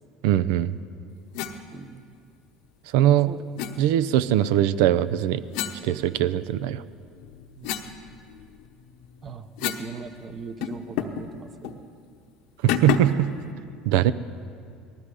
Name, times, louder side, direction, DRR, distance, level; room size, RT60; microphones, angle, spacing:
voice 1, 0.2-0.7 2.9-3.3 3.8-5.4 5.8-6.8 12.6-13.3 13.9-14.1, right 12 dB, 80° right, 16 dB, 0.5 m, -21 dB
sound 1, 1.3-1.6 3.6-3.7 5.5-6.6 7.0-9.9 10.2-10.3 10.6-11.3 11.6-11.8 12.7-13.2, left 10 dB, 75° left, 1.0 m, -31 dB
voice 2, 1.7-2.0 3.3-3.4 4.3-4.4 7.6-7.8 9.2-11.8, right 5 dB, 35° right, 9 dB, 0.9 m, -40 dB
19.0 x 13.5 x 4.9 m, 2.2 s
supercardioid pair, 105°, 0 cm